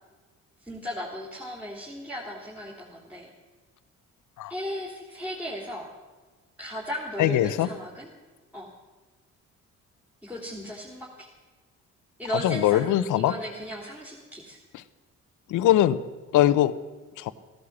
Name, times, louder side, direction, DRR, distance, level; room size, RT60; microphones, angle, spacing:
voice 1, 0.6-3.3 4.4-5.9 6.6-8.1 8.5-8.7 10.2-11.3 12.2-14.6, equal, 5° right, -5 dB, 2.9 m, -36 dB
voice 2, 7.2-7.7 12.4-13.3 15.5-16.0 16.3-16.7 17.2-17.3, left 13 dB, 80° left, 15 dB, 0.8 m, -21 dB
16.0 x 11.5 x 7.2 m, 1.3 s
cardioid pair, 90°, 30 cm